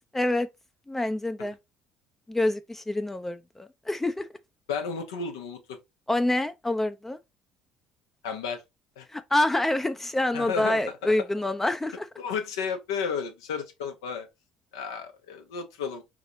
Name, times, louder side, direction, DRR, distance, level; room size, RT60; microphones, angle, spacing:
voice 1, 0.1-0.5 0.9-1.6 2.3-4.3 6.1-7.2 9.1-12.1, left 1 dB, 15° left, 0.4 m, -26 dB
voice 2, 4.7-5.8 8.2-8.6 9.0-9.1 10.3-11.1 12.2-14.3 14.7-16.0, left 6 dB, 90° left, 0.8 m, -33 dB
3.8 x 3.0 x 2.7 m
hypercardioid pair, 65°, 2 cm